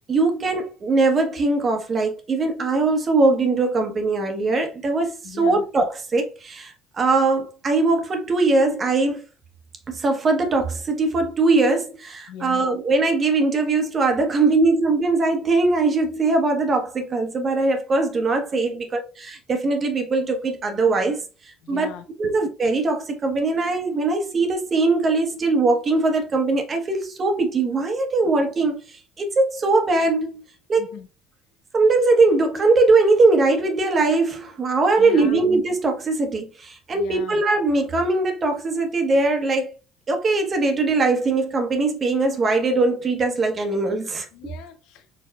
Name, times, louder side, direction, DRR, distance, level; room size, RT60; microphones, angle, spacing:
voice 1, 0.1-9.2 9.9-21.2 21.7-21.9 22.2-30.4 30.7-31.0 31.7-39.7 40.1-44.3, right 3 dB, 35° right, 1.0 m, -21 dB
voice 2, 5.2-5.6 12.3-12.7 21.6-22.3 30.8-31.1 35.0-35.5 36.9-37.4 44.3-45.1, left 8 dB, 75° left, 0.6 m, -39 dB
4.6 x 3.9 x 2.3 m
supercardioid pair, 80°, 0 cm